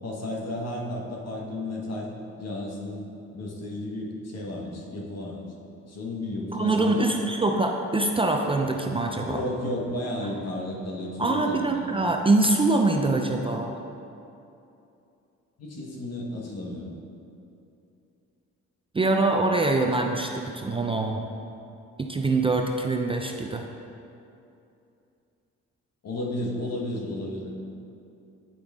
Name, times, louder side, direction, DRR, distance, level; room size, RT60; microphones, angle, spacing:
voice 1, 0.0-2.1 2.4-5.5 5.9-7.2 9.2-12.1 15.6-16.9 26.0-27.5, left 1 dB, 55° left, -1 dB, 1.4 m, -33 dB
voice 2, 6.5-9.4 11.2-13.7 18.9-21.3 22.0-23.7, right 2 dB, 20° right, 2 dB, 0.4 m, -24 dB
8.8 x 5.0 x 3.6 m, 2.7 s
cardioid pair, 90°, 30 cm